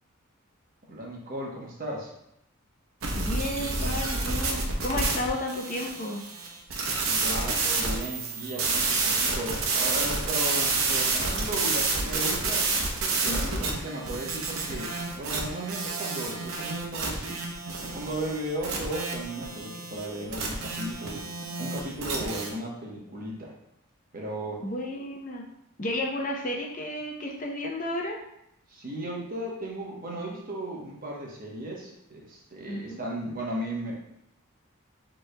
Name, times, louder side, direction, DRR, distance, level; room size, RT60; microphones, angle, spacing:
voice 1, 0.9-2.1 7.0-12.6 13.2-17.4 17.8-21.2 21.6-23.5 24.1-24.6 28.7-34.0, right 1 dB, 40° right, -2 dB, 1.0 m, -35 dB
sound 1, 3.0-22.5, right 3 dB, 75° right, 0.8 m, -29 dB
voice 2, 3.2-6.2 13.2-13.7 24.6-25.5 25.8-28.2 32.7-33.1, left 1 dB, 40° left, 1 dB, 0.6 m, -32 dB
7.1 x 3.1 x 2.2 m, 0.79 s
head